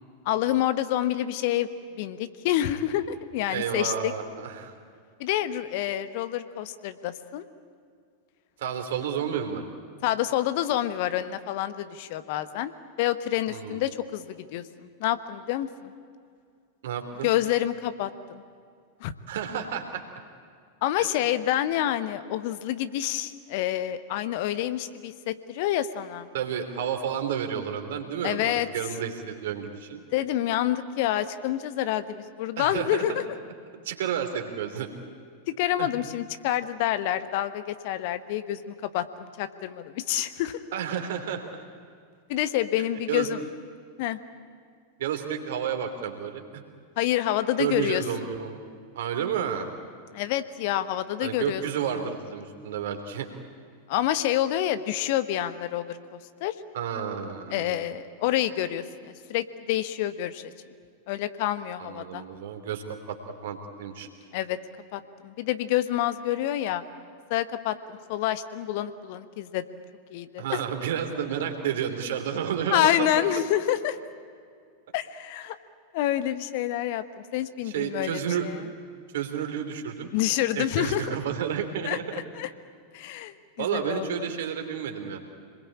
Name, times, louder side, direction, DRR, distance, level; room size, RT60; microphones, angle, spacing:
voice 1, 0.2-1.7 2.0-4.1 5.2-7.4 10.0-12.7 13.0-15.9 17.2-18.4 19.0-19.1 20.8-26.3 28.2-28.7 30.1-33.1 35.5-40.6 42.3-43.4 44.0-44.2 47.0-48.0 50.1-51.6 53.9-56.0 56.4-56.5 57.5-60.4 61.1-62.2 64.3-64.6 64.9-66.8 67.3-69.6 70.1-70.6 72.7-74.0 74.9-75.6 75.9-78.6 80.1-81.2 81.8-82.5 82.9-84.1, left 12 dB, 50° left, 12 dB, 1.2 m, -28 dB
voice 2, 3.5-4.7 8.6-9.6 13.5-13.8 16.8-17.3 19.3-20.0 21.0-21.1 26.3-30.0 32.6-33.2 33.7-34.9 35.8-35.9 40.7-41.4 43.1-43.3 45.0-46.6 47.6-48.6 48.9-49.7 51.2-53.3 56.7-57.8 61.8-63.2 63.4-64.1 70.4-73.1 77.6-78.5 79.1-80.1 80.6-82.0 83.6-85.2, right 8 dB, 55° right, 6 dB, 3.2 m, -31 dB
27.0 x 21.0 x 8.7 m, 2.2 s
figure-of-eight pair, 90°, 0 cm